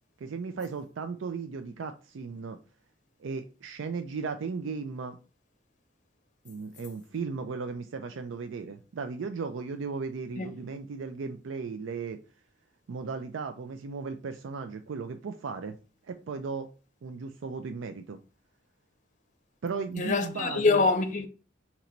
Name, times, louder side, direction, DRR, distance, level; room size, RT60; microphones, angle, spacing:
voice 1, 0.2-2.6 3.2-5.2 6.4-12.2 12.9-15.8 16.1-16.7 17.0-18.2 19.6-20.9, right 5 dB, 75° right, 0.4 m, -36 dB
voice 2, 20.0-21.3, left 3 dB, 40° left, 0.6 m, -25 dB
3.8 x 3.0 x 4.4 m
head